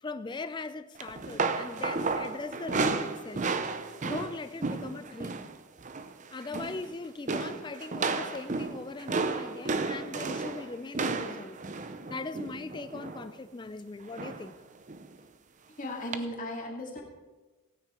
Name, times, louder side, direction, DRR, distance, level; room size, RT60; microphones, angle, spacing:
voice 1, 0.0-3.5 4.0-5.4 6.3-11.6 12.1-14.6, left 3 dB, 20° left, 0.3 m, -40 dB
sound 1, 1.0-5.5 5.8-6.1 6.4-6.9 7.3-13.3 14.2-14.5 14.9-15.1 16.1-16.2, right 4 dB, 35° right, 0.6 m, -33 dB
voice 2, 15.8-17.0, left 1 dB, 35° left, 2.2 m, -36 dB
17.0 x 9.4 x 4.4 m
head